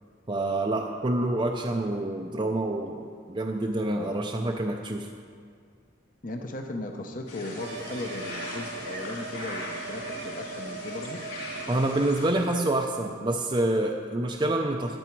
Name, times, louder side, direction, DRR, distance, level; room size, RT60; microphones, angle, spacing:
voice 1, 0.3-5.1 11.7-15.0, right 1 dB, 25° right, 1 dB, 0.5 m, -27 dB
voice 2, 6.2-11.2, left 2 dB, 40° left, 4 dB, 0.7 m, -37 dB
sound 1, 7.3-12.3, left 1 dB, 60° left, 3.6 m, -39 dB
sound 2, 7.6-12.1, right 4 dB, 60° right, 0.8 m, -39 dB
14.0 x 9.4 x 4.6 m, 2.1 s
head